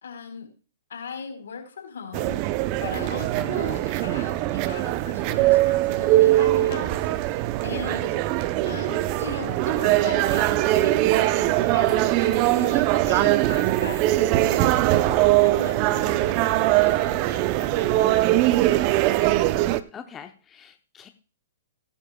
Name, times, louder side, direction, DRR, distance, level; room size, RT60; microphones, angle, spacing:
voice 1, 0.0-0.5 0.9-2.4 2.8-8.2 8.7-18.9, left 5 dB, 80° left, 4 dB, 4.2 m, -39 dB
sound 1, 2.1-19.8, right 16 dB, 40° right, 0.6 m, -21 dB
voice 2, 19.9-21.1, left 8 dB, 20° left, 7 dB, 0.8 m, -43 dB
18.5 x 10.5 x 2.3 m, 0.34 s
hypercardioid pair, 130°, 0 cm